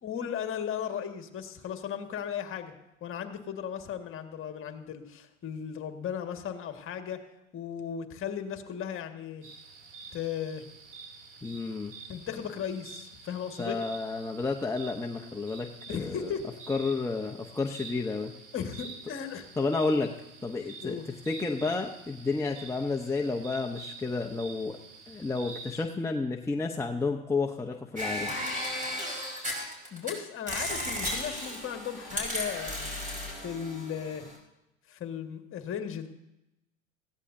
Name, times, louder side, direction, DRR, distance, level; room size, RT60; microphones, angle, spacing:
voice 1, 0.0-2.7 3.0-7.2 7.5-9.5 10.1-10.7 12.1-13.8 15.9-16.4 18.5-19.5 20.8-21.1 29.9-32.9 33.3-34.3 34.9-36.1, left 8 dB, 30° left, 6 dB, 1.7 m, -36 dB
sound 1, 9.4-25.9, right 4 dB, 65° right, 2.9 m, -48 dB
voice 2, 11.4-11.9 13.6-16.3 16.7-18.3 19.6-20.1 20.4-21.0 21.3-24.8 25.1-28.3, left 3 dB, 5° left, 1 dB, 0.8 m, -31 dB
sound 2, 28.0-30.1 30.5-34.4, left 1 dB, 20° right, 4.9 m, -35 dB
19.5 x 15.5 x 2.7 m, 0.92 s
hypercardioid pair, 95°, 40 cm